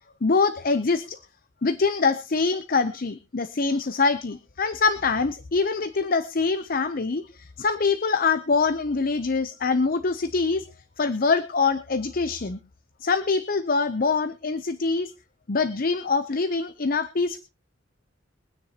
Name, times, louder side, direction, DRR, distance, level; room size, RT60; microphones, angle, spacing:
voice 1, 0.2-1.2 1.6-10.6 11.0-12.6 13.0-15.1 15.5-17.4, left 4 dB, 45° left, 12 dB, 0.7 m, -24 dB
23.0 x 9.6 x 2.9 m, 0.30 s
head